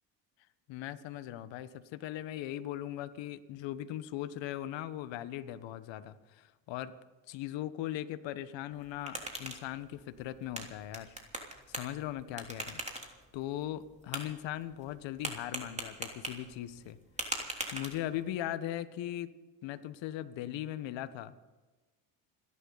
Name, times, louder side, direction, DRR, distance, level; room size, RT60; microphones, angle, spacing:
voice 1, 0.7-6.9 7.3-11.1 11.7-13.1 13.3-17.0 17.7-19.3 19.6-21.3, left 12 dB, 65° left, 12 dB, 1.3 m, -39 dB
sound 1, 8.7-18.4, right 1 dB, 15° right, 3.4 m, -43 dB
30.0 x 11.5 x 4.1 m, 1.2 s
hypercardioid pair, 70°, 48 cm